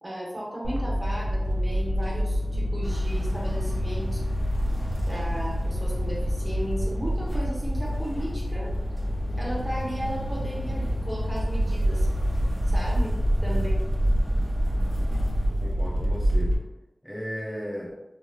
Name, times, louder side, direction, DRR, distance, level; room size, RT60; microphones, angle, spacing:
voice 1, 0.0-4.2 5.1-8.7 9.3-12.1 12.6-13.2 13.4-13.7, equal, 25° right, -5 dB, 1.2 m, -35 dB
sound 1, 0.6-16.6, equal, 50° right, 0.6 m, -27 dB
sound 2, 2.8-15.5, equal, 45° left, 1.2 m, -34 dB
voice 2, 15.4-16.6 17.0-17.9, equal, 10° left, -3 dB, 0.4 m, -36 dB
3.1 x 2.6 x 2.3 m, 1.0 s
wide cardioid pair, 50°, 0 cm